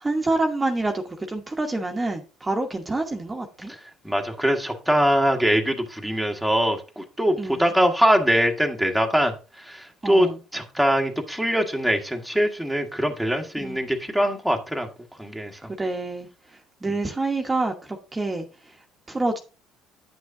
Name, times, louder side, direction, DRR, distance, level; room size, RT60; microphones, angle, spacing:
voice 1, 0.0-3.7 7.4-7.6 10.0-10.3 13.6-13.8 15.8-16.3 16.8-18.5 19.1-19.4, right 2 dB, 20° right, 1.2 m, -27 dB
voice 2, 3.7-14.9 15.2-15.7, equal, ahead, 1.4 m, -23 dB
9.5 x 6.2 x 2.7 m
hypercardioid pair, 70°, 0 cm